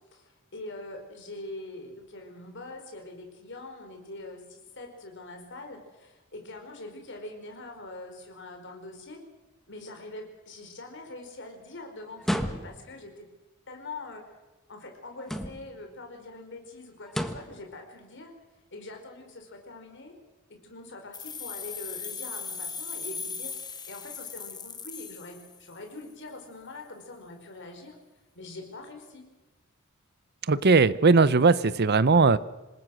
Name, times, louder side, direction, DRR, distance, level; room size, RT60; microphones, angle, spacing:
voice 1, 0.1-9.2 9.7-13.3 13.7-14.3 14.7-18.3 18.7-20.2 20.5-23.5 23.9-28.0 28.3-29.2, left 2 dB, 60° left, 3 dB, 4.7 m, -43 dB
sound 1, 12.2-13.0 15.2-15.8 17.1-17.6, equal, ahead, 1.4 m, -32 dB
sound 2, 21.1-25.9, left 5 dB, 20° left, 1.2 m, -38 dB
voice 2, 30.5-32.4, right 4 dB, 50° right, 17 dB, 0.8 m, -19 dB
27.0 x 20.0 x 6.4 m, 1.1 s
head